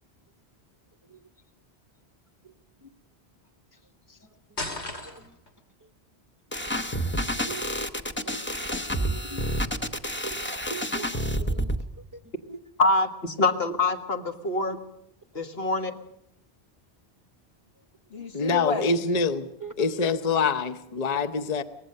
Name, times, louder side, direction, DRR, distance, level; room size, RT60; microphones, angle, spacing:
sound 1, 4.6-5.5, left 2 dB, 90° left, 3.1 m, -34 dB
voice 1, 4.7-5.4 7.4-7.9 8.2-8.5 9.0-9.5 10.2-11.7 12.5-12.6 19.6-19.7, right 4 dB, 20° right, 0.7 m, -42 dB
sound 2, 6.5-11.8, equal, 10° left, 0.9 m, -29 dB
voice 2, 12.8-14.8 15.3-16.0 18.1-18.9, left 2 dB, 65° left, 1.7 m, -26 dB
voice 3, 18.3-19.5 19.8-21.6, left 4 dB, 40° left, 0.9 m, -25 dB
24.0 x 18.5 x 6.6 m
omnidirectional pair, 1.1 m